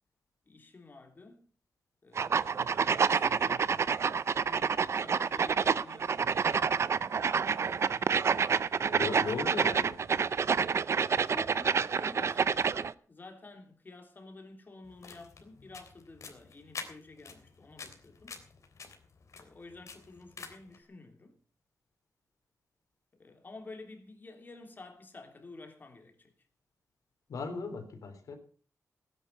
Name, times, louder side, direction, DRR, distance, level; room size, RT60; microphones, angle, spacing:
voice 1, 0.4-1.5 2.0-3.8 4.4-7.4 9.1-9.7 11.3-18.4 19.3-21.4 23.1-26.3, left 3 dB, 35° left, 3.1 m, -51 dB
sound 1, 2.2-12.9, right 6 dB, 55° right, 0.6 m, -28 dB
voice 2, 8.9-10.0 27.3-28.4, left 4 dB, 85° left, 3.7 m, -37 dB
sound 2, 14.8-20.8, left 5 dB, 60° left, 3.3 m, -48 dB
17.5 x 10.0 x 5.6 m
wide cardioid pair, 145°, 6 cm